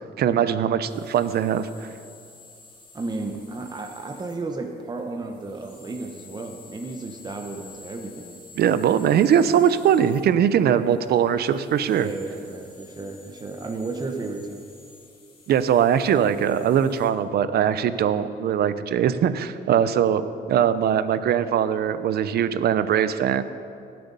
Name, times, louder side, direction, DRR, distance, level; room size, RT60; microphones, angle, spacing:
voice 1, 0.2-1.9 8.6-12.1 15.5-23.4, right 9 dB, 65° right, 13 dB, 0.7 m, -21 dB
sound 1, 0.9-17.1, left 3 dB, 30° left, 2.3 m, -51 dB
voice 2, 2.9-8.4 12.0-14.6, right 3 dB, 25° right, 3 dB, 1.0 m, -33 dB
19.0 x 7.8 x 5.5 m, 2.5 s
cardioid pair, 110°, 18 cm